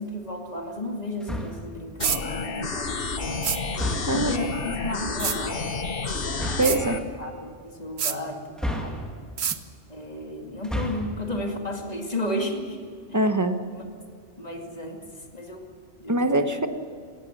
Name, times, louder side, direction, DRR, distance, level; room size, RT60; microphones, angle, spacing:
voice 1, 0.0-3.5 4.1-5.7 6.7-9.0 9.9-13.2 13.7-13.8 14.4-15.7 16.0-16.3, left 1 dB, 35° left, 2 dB, 2.4 m, -33 dB
sound 1, 1.2-1.8 3.7-4.4 6.3-6.8 8.6-9.4 10.5-11.2, equal, ahead, 2.3 m, -31 dB
sound 2, 2.0-7.0, left 4 dB, 55° left, 1.5 m, -30 dB
sound 3, 2.0-2.2 3.4-3.6 5.2-5.4 6.6-6.8 8.0-8.2 9.4-9.6, right 8 dB, 70° right, 1.1 m, -26 dB
voice 2, 4.1-4.4 6.6-7.0 13.1-13.6 16.1-16.7, right 1 dB, 15° right, 7 dB, 1.1 m, -23 dB
18.0 x 16.0 x 9.8 m, 2.2 s
omnidirectional pair, 1.1 m